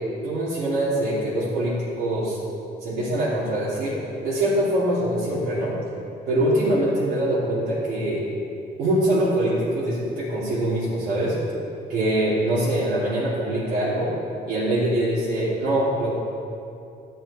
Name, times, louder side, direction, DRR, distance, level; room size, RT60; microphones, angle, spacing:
voice 1, 0.2-2.4 2.8-5.8 6.3-8.3 8.8-11.4 11.9-14.1 14.5-16.1, right 1 dB, 70° right, -9 dB, 2.8 m, -23 dB
12.0 x 8.1 x 4.3 m, 2.6 s
cardioid pair, 110°, 17 cm